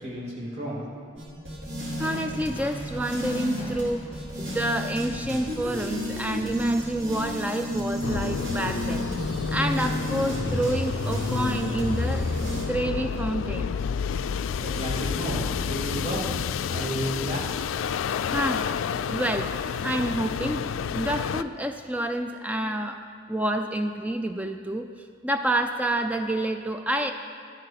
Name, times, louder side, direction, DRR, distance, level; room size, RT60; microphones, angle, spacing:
voice 1, 0.0-1.0 14.6-16.2 16.7-17.4, equal, 30° right, -5 dB, 2.6 m, -32 dB
sound 1, 1.2-12.6, left 1 dB, 60° right, 3.7 m, -31 dB
sound 2, 2.0-6.8, left 1 dB, 45° left, 2.3 m, -46 dB
voice 2, 2.0-4.0 4.4-9.1 9.5-13.7 18.3-18.6 19.0-19.5 19.8-20.7 20.9-23.0 23.3-27.1, right 1 dB, 10° right, 6 dB, 0.4 m, -28 dB
sound 3, 8.0-21.4, left 7 dB, 90° left, 0.3 m, -30 dB
12.5 x 8.6 x 5.9 m, 2.2 s
head